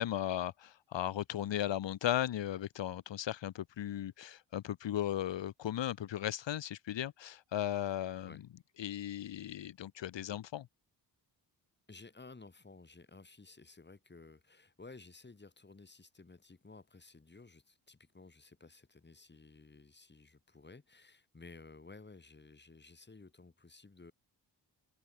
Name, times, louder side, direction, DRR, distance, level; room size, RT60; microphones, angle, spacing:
voice 1, 0.0-8.3 8.8-10.7, left 11 dB, 85° left, 1.5 m, -36 dB
voice 2, 11.9-24.1, left 3 dB, 25° left, 6.3 m, -55 dB
wide cardioid pair, 125°, 43 cm